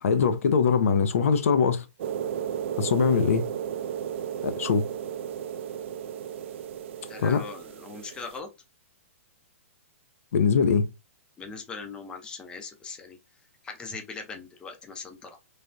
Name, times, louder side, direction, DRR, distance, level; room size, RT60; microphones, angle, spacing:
voice 1, 0.0-1.8 2.8-3.5 4.4-4.9 7.2-7.4 10.3-10.9, left 6 dB, 70° left, 0.5 m, -22 dB
sound 1, 2.0-8.4, right 9 dB, 55° right, 0.4 m, -34 dB
voice 2, 7.1-8.5 11.4-13.2 13.6-15.4, left 4 dB, 10° left, 0.5 m, -40 dB
3.2 x 2.3 x 2.5 m
hypercardioid pair, 150°, 8 cm